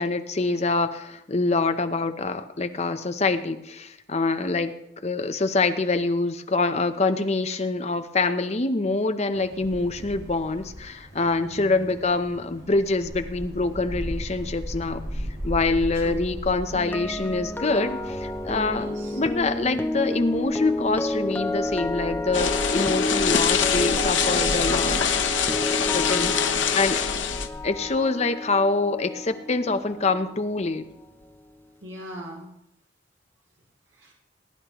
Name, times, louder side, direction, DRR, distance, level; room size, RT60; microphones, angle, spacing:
voice 1, 0.0-4.7 5.0-15.0 15.4-25.0 25.9-27.1 27.6-30.8, left 3 dB, 35° left, 8 dB, 0.7 m, -25 dB
Wind, 9.3-27.9, equal, 20° right, 5.9 m, -39 dB
voice 2, 11.4-11.9 15.9-16.2 18.8-19.2 26.0-26.7 31.8-32.5 33.9-34.1, equal, 90° right, -3 dB, 2.9 m, -40 dB
sound 1, 16.7-30.8 31.0-31.3, left 1 dB, 10° left, 0.4 m, -31 dB
sound 2, 22.3-27.5, left 7 dB, 80° left, 0.9 m, -24 dB
20.0 x 10.5 x 3.0 m, 0.82 s
head